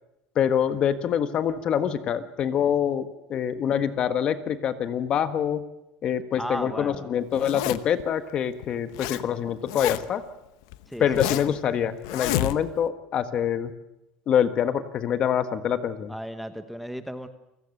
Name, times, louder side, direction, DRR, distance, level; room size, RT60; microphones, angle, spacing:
voice 1, 0.3-5.6 6.0-10.2 11.0-13.7 14.3-16.1, left 9 dB, 40° left, 10 dB, 1.5 m, -25 dB
voice 2, 6.4-7.1 10.9-11.1 16.1-17.3, equal, ahead, 9 dB, 1.2 m, -34 dB
Zipper (clothing), 7.3-8.0 8.6-9.2 9.5-10.2 10.7-11.6 12.0-12.9, left 15 dB, 85° left, 1.0 m, -29 dB
29.0 x 17.0 x 6.7 m, 0.88 s
cardioid pair, 135°, 2 cm